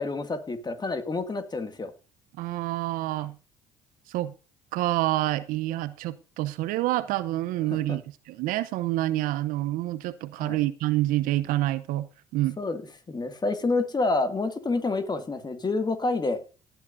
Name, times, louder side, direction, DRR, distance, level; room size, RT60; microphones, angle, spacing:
voice 1, 0.0-1.9 7.7-8.0 10.4-10.6 12.6-12.8 13.1-16.4, left 3 dB, 30° left, 2.2 m, -28 dB
voice 2, 2.4-3.3 4.1-4.3 4.7-8.0 8.3-12.1 12.3-12.6, right 16 dB, 70° right, 0.8 m, -27 dB
17.5 x 9.2 x 2.7 m
hypercardioid pair, 55°, 15 cm